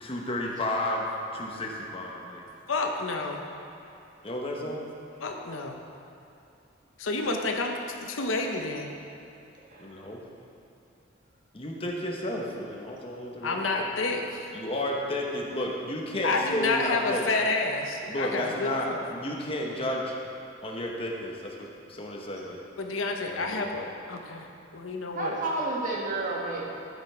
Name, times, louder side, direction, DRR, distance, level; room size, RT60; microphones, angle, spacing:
voice 1, 0.0-2.4 4.2-4.8 9.8-10.2 11.5-13.9 14.5-17.3 18.0-20.1 20.6-22.6 23.2-23.7, left 1 dB, 30° left, -1 dB, 1.0 m, -32 dB
voice 2, 2.7-3.4 5.2-5.8 7.0-8.9 13.4-14.5 16.2-19.0 22.8-25.4, left 3 dB, 90° left, 3 dB, 0.9 m, -29 dB
voice 3, 9.7-10.0 25.1-26.8, right 2 dB, 40° right, -4 dB, 1.5 m, -31 dB
12.5 x 5.7 x 4.4 m, 2.8 s
head